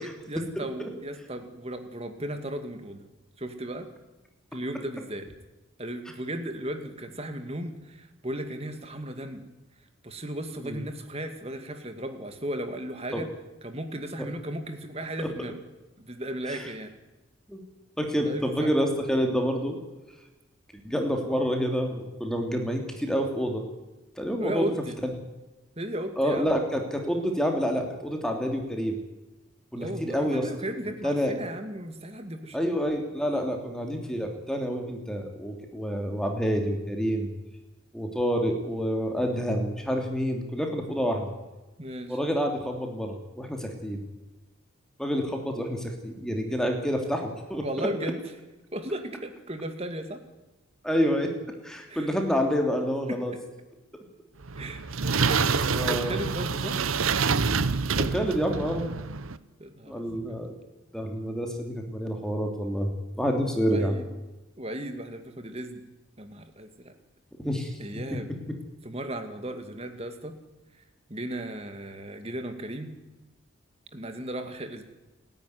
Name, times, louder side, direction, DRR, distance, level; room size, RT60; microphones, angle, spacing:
voice 1, 0.0-3.0 3.4-3.9 4.5-5.3 5.8-9.4 10.0-13.3 13.6-15.6 16.0-16.9 18.3-18.7 24.4-25.0 25.8-26.5 29.7-32.7 41.8-42.2 47.6-48.2 48.7-50.2 51.9-52.1 53.1-53.4 54.6-54.8 55.3-56.8 59.6-60.3 63.6-64.0 64.6-65.8 66.2-66.9 67.8-68.3 68.8-70.4 71.1-72.9 73.9-74.8, right 1 dB, 30° right, 8 dB, 2.3 m, -35 dB
voice 2, 18.0-19.8 20.8-23.6 24.2-24.7 26.2-29.0 29.7-30.5 31.0-31.3 32.5-37.3 37.9-41.3 42.1-44.0 45.0-48.1 50.8-51.3 51.6-53.3 55.0-55.3 55.7-56.2 58.0-58.9 59.9-60.5 60.9-63.9 67.4-68.0, equal, 5° left, 3 dB, 2.9 m, -28 dB
sound 1, 54.4-59.4, right 5 dB, 90° right, 1.0 m, -27 dB
28.5 x 11.0 x 9.5 m, 1.1 s
head